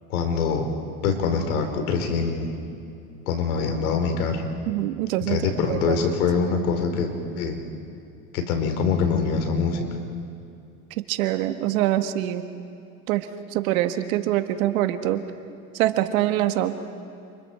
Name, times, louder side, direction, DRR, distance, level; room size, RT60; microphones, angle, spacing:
voice 1, 0.1-0.7 1.0-2.6 3.3-4.5 5.3-7.6 8.3-9.9, left 5 dB, 90° left, 5 dB, 3.9 m, -24 dB
voice 2, 4.7-6.0 11.0-12.4 13.1-15.2 15.7-16.7, right 13 dB, 75° right, 8 dB, 1.7 m, -24 dB
30.0 x 27.5 x 4.5 m, 2.5 s
supercardioid pair, 125°, 42 cm